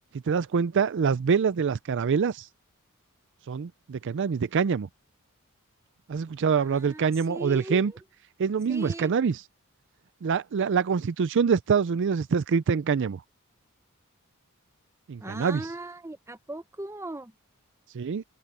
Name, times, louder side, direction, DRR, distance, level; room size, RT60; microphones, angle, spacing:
voice 1, 0.3-2.5 3.5-4.9 6.1-7.9 8.4-9.4 10.2-13.2 15.1-15.6 17.9-18.2, right 6 dB, 55° right, 0.4 m, -25 dB
voice 2, 6.5-8.0 8.7-9.1 15.2-17.3, right 1 dB, 15° right, 0.8 m, -38 dB
open air
head